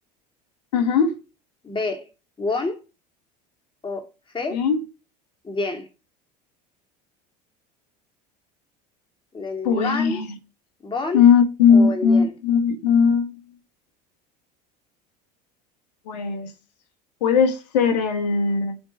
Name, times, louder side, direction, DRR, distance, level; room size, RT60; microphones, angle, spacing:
voice 1, 0.7-1.2 4.5-4.8 9.6-10.3 11.1-13.3 16.1-16.5 17.2-18.8, left 6 dB, 80° left, 1.6 m, -18 dB
voice 2, 1.6-2.1 2.4-2.8 3.8-4.1 4.3-4.6 5.4-5.9 9.3-10.2 10.8-11.2 11.7-12.3, left 3 dB, 25° left, 2.5 m, -28 dB
7.0 x 3.8 x 6.0 m
hypercardioid pair, 90°, 21 cm